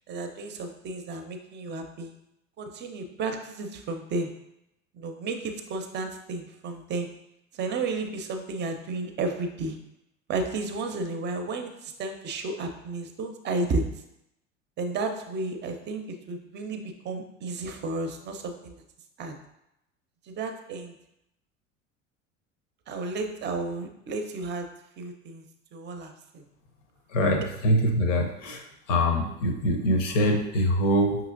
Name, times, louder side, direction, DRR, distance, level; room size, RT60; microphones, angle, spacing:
voice 1, 0.1-2.1 2.6-4.3 4.9-7.1 7.5-9.8 10.3-13.8 14.8-18.8 19.2-19.4 20.2-21.0 22.9-24.7 25.0-25.4 25.7-26.4, right 3 dB, 30° right, 6 dB, 0.6 m, -32 dB
voice 2, 27.1-28.6 28.9-31.2, equal, 70° left, 3 dB, 0.8 m, -24 dB
5.5 x 2.9 x 2.5 m, 0.84 s
figure-of-eight pair, 70°, 38 cm